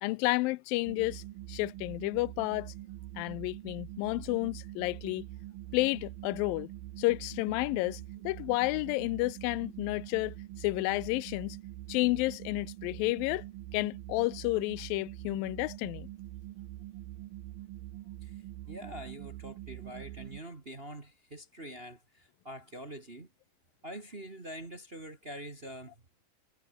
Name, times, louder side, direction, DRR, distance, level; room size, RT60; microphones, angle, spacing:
voice 1, 0.0-1.2 1.5-2.7 3.2-5.2 5.7-6.7 7.0-11.6 11.9-13.4 13.7-16.1, left 21 dB, 85° left, 2.3 m, -31 dB
sound 1, 0.9-20.4, right 15 dB, 85° right, 2.9 m, -44 dB
voice 2, 18.2-23.3 23.8-25.9, right 1 dB, 25° right, 1.5 m, -45 dB
omnidirectional pair, 4.0 m